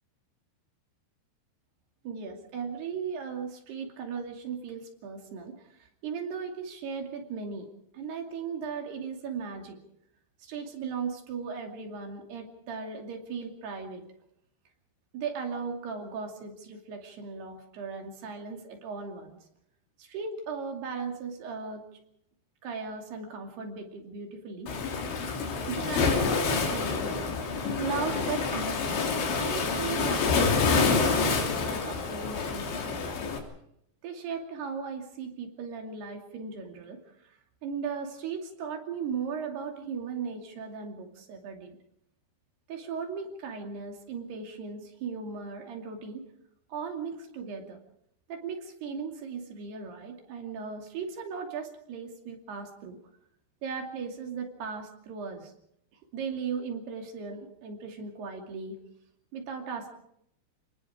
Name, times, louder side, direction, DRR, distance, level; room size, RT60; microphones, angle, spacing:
voice 1, 2.0-7.7 7.9-9.8 10.4-14.0 15.1-19.4 20.0-22.0 22.6-24.7 25.7-27.2 27.5-33.3 34.0-41.8 42.7-46.2 46.7-47.8 48.3-53.0 53.6-55.5 56.1-58.8 59.3-59.9, right 5 dB, 65° right, 3 dB, 4.5 m, -37 dB
Waves surf, 24.7-33.4, left 4 dB, 75° left, 5.5 m, -27 dB
29.5 x 19.5 x 5.0 m, 0.75 s
omnidirectional pair, 5.2 m